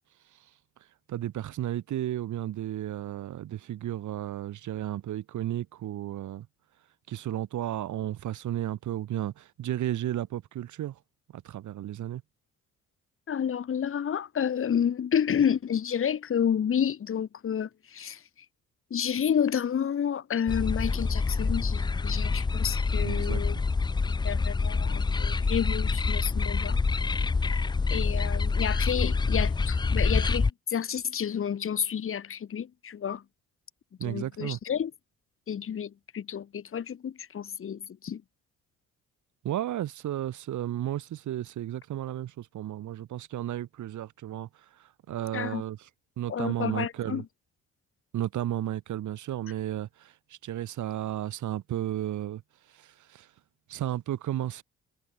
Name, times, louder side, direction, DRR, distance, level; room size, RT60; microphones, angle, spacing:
voice 1, 1.1-6.5 7.1-11.0 11.3-12.2 23.0-23.9 34.0-34.6 39.4-45.9 46.2-47.2 48.1-52.4 52.7-53.3 53.7-54.6, right 12 dB, 75° right, 2.9 m, -33 dB
voice 2, 13.3-18.2 18.9-23.6 23.9-26.8 27.9-33.2 34.0-34.9 35.5-38.2 45.3-45.6 46.3-47.2, left 8 dB, 45° left, 1.5 m, -30 dB
sound 1, 20.5-30.5, left 4 dB, 15° left, 0.4 m, -26 dB
cardioid pair, 90°, 30 cm